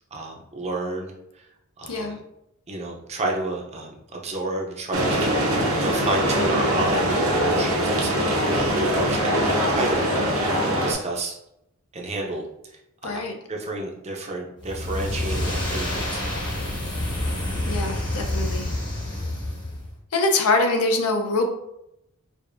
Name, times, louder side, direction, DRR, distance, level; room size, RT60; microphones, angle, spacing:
voice 1, 0.1-1.5 1.8-2.2 2.7-10.0 10.6-11.3 11.9-12.5 13.0-13.2 13.5-16.2, right 2 dB, 30° right, 0 dB, 0.6 m, -31 dB
sound 1, 4.9-10.9, equal, 65° right, 0.8 m, -22 dB
voice 2, 13.0-13.3 17.7-18.7 20.1-21.5, left 2 dB, 80° left, 4 dB, 0.6 m, -23 dB
sound 2, 14.6-19.9, left 1 dB, 20° left, 0.8 m, -28 dB
4.8 x 2.5 x 2.6 m, 0.83 s
head